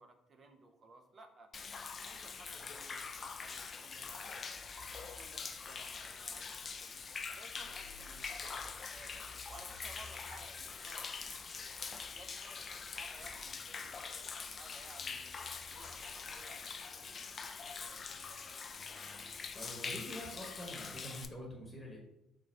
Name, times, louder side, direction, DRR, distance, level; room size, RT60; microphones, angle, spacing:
voice 1, 0.0-1.5 2.0-4.5 5.1-7.0 7.3-11.7 12.0-15.3 15.6-18.1, right 2 dB, 45° right, 5 dB, 0.6 m, -58 dB
Human voice / Rain / Stream, 1.5-21.3, left 5 dB, 40° left, 0.4 m, -44 dB
voice 2, 19.5-22.0, equal, 15° left, -2 dB, 1.1 m, -46 dB
3.8 x 2.4 x 3.2 m, 0.84 s
hypercardioid pair, 55°, 0 cm